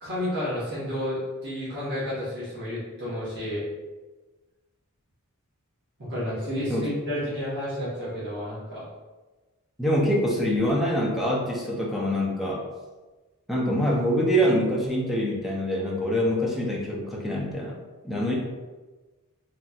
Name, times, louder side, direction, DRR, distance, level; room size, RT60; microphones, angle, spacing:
voice 1, 0.0-3.6 6.0-8.8, left 1 dB, 50° right, -10 dB, 1.1 m, -31 dB
voice 2, 9.8-12.6 13.5-17.7 18.0-18.3, equal, ahead, -4 dB, 0.5 m, -25 dB
3.0 x 2.7 x 2.3 m, 1.2 s
head